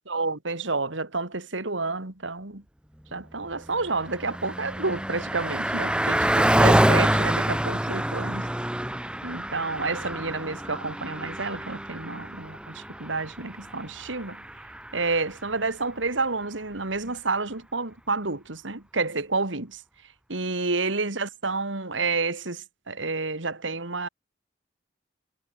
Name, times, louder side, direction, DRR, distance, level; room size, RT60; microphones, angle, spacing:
voice 1, 0.1-2.6 3.1-8.5 9.2-14.4 14.9-19.8 20.3-24.1, right 3 dB, 85° right, 2.6 m, -29 dB
Car passing by, 3.6-15.3, right 1 dB, 5° right, 1.0 m, -26 dB
head